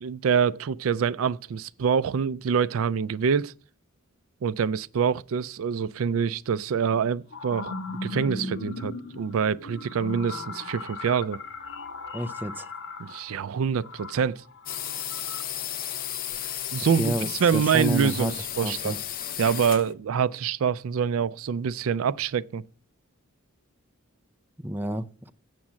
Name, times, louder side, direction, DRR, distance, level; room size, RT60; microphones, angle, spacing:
voice 1, 0.0-3.5 4.4-11.4 13.0-14.4 16.7-18.9 19.4-22.6, right 7 dB, 70° right, 0.4 m, -26 dB
sound 1, 6.1-6.2 6.9-15.4, left 3 dB, 60° left, 1.2 m, -38 dB
voice 2, 12.1-12.7 17.0-17.3 17.5-19.0 24.6-25.3, right 1 dB, 10° right, 0.5 m, -30 dB
sound 2, 14.7-19.9, left 10 dB, 40° left, 0.5 m, -33 dB
7.6 x 7.2 x 7.2 m
head